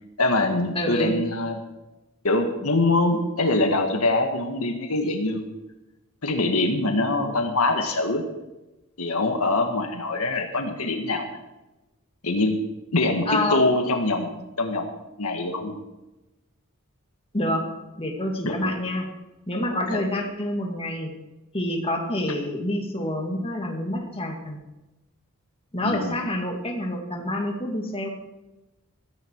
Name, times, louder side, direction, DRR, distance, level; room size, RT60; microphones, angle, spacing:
voice 1, 0.2-1.6 2.2-5.5 6.2-8.2 9.0-11.4 12.2-12.6 12.9-14.8 15.2-15.8 18.4-18.7 19.9-20.1 25.8-26.2, left 2 dB, 75° left, 4 dB, 1.8 m, -24 dB
voice 2, 0.7-1.2 13.3-13.7 17.3-17.7 18.0-19.1 19.5-21.1 21.5-24.6 25.7-28.1, left 1 dB, 25° left, 2 dB, 2.3 m, -27 dB
15.0 x 14.5 x 4.7 m, 1.0 s
head